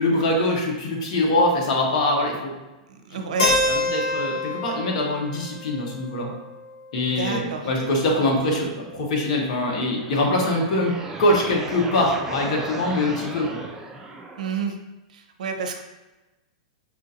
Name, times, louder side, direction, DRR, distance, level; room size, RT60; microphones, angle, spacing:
voice 1, 0.0-2.5 3.7-6.3 6.9-10.9 11.2-13.6, left 1 dB, 60° left, 0 dB, 1.1 m, -23 dB
voice 2, 2.9-3.6 7.1-7.7 14.4-14.7 15.1-15.8, right 5 dB, 80° right, 5 dB, 0.6 m, -29 dB
Keyboard (musical), 3.4-7.3, left 2 dB, 85° left, 0.9 m, -27 dB
sound 1, 9.8-14.7, right 2 dB, 15° right, 0.3 m, -36 dB
5.4 x 2.6 x 2.7 m, 1.1 s
hypercardioid pair, 135°, 4 cm